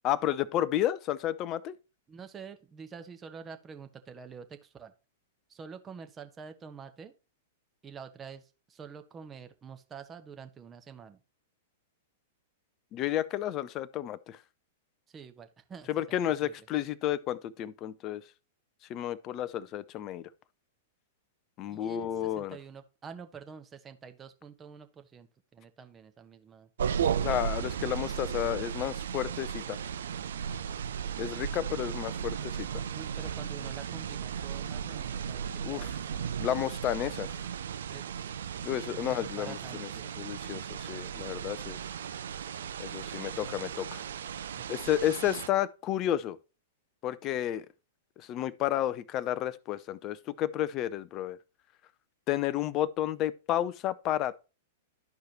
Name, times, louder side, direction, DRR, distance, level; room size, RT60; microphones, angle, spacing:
voice 1, 0.0-1.7 12.9-14.4 15.9-18.2 18.9-20.3 21.6-22.6 27.2-29.8 31.2-32.7 35.6-35.9 36.4-37.3 38.6-39.9 40.2-41.8 42.8-44.0 44.7-46.4 47.0-47.7 48.2-51.4 52.3-54.5, left 12 dB, 35° left, 0.5 m, -31 dB
voice 2, 2.1-4.9 5.5-7.1 7.8-11.2 15.1-16.7 21.7-25.3 25.5-26.7 32.9-36.4 37.8-38.3 38.9-40.1 44.5-44.6, right 6 dB, 20° right, 1.0 m, -47 dB
sound 1, 26.8-45.5, right 8 dB, 65° right, 0.5 m, -36 dB
12.5 x 4.8 x 2.9 m
figure-of-eight pair, 100°, 0 cm